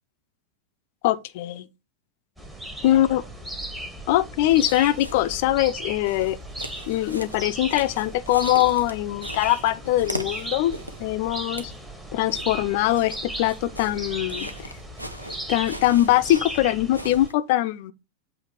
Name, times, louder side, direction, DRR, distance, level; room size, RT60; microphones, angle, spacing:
voice 1, 1.0-1.7 2.8-3.2 4.1-6.4 6.9-11.7 12.1-14.7 15.5-17.9, left 14 dB, 50° left, 0.5 m, -22 dB
sound 1, 2.4-17.3, right 1 dB, 10° right, 1.4 m, -37 dB
sound 2, 4.5-5.5 5.9-11.1 11.4-11.8 12.3-17.3, equal, 90° right, 0.7 m, -39 dB
8.1 x 2.7 x 5.9 m
figure-of-eight pair, 90°, 0 cm